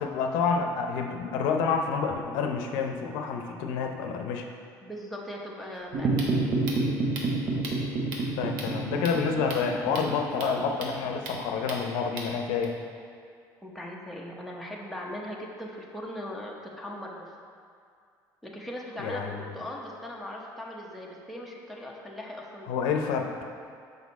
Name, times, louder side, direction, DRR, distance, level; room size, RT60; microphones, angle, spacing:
voice 1, 0.0-4.5 8.3-12.7 19.0-19.3 22.6-23.3, left 5 dB, 85° left, 3 dB, 0.6 m, -28 dB
voice 2, 4.8-6.4 10.5-10.7 13.6-17.3 18.4-23.0, equal, ahead, -3 dB, 0.8 m, -39 dB
sound 1, 5.7-12.6, right 2 dB, 75° right, 1.1 m, -41 dB
sound 2, 5.9-12.5, right 2 dB, 50° right, 0.8 m, -30 dB
6.3 x 5.3 x 4.1 m, 2.3 s
cardioid pair, 130°, 8 cm